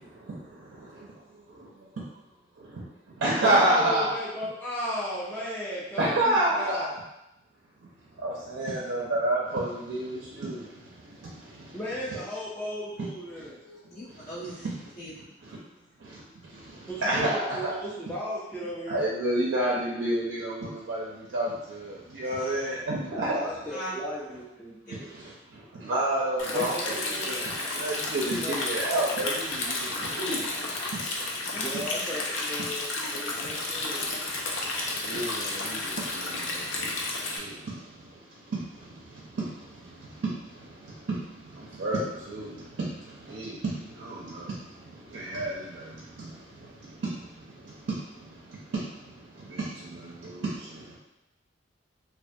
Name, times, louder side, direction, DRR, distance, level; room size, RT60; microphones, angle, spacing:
voice 1, 0.0-2.0 2.6-4.1 6.0-6.9 7.8-11.8 14.1-14.3 15.4-15.6 16.0-17.7 18.9-23.3 24.9-31.6 33.3-51.0, right 1 dB, 65° right, -5 dB, 0.4 m, -31 dB
voice 2, 3.4-6.9 11.7-13.6 16.9-19.0 22.2-22.7 23.3-25.1 26.5-27.3 27.6-27.8 28.4-29.2 29.9-30.9 31.5-34.1, equal, 10° left, -8 dB, 0.4 m, -36 dB
voice 3, 13.6-14.7 15.0-15.1 23.7-23.9 24.8-24.9 31.4-32.0, equal, 50° left, -14 dB, 0.8 m, -40 dB
Stream, 26.4-37.4, left 2 dB, 75° left, 0.4 m, -32 dB
2.4 x 2.3 x 2.5 m, 0.91 s
head